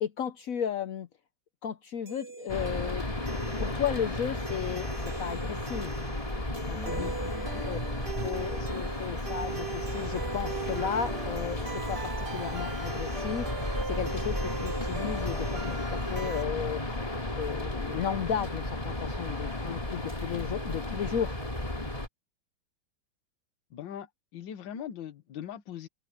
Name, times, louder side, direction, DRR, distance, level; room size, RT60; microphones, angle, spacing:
voice 1, 0.0-1.1 1.6-3.0 3.6-4.9 5.2-5.9 6.7-7.1 7.6-7.8 8.2-11.6 11.9-13.5 13.8-16.8 17.3-21.3, left 8 dB, 90° left, 0.7 m, -34 dB
sound 1, 2.1-16.4, right 5 dB, 50° right, 4.8 m, -40 dB
sound 2, 2.5-22.1, left 1 dB, 15° left, 2.5 m, -34 dB
voice 2, 6.7-7.7 23.7-24.1 24.3-25.9, left 9 dB, 65° left, 1.8 m, -41 dB
omnidirectional pair, 2.4 m